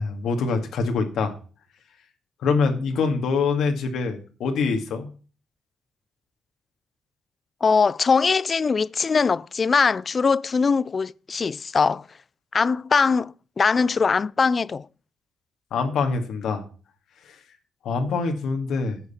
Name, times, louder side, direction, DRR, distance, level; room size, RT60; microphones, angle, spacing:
voice 1, 0.0-1.3 2.4-5.1 15.7-16.6 17.8-19.0, left 4 dB, 75° left, 1.9 m, -24 dB
voice 2, 7.6-12.1 12.5-14.9, left 5 dB, 35° left, 0.3 m, -21 dB
11.0 x 6.6 x 4.2 m
cardioid pair, 90°, 0 cm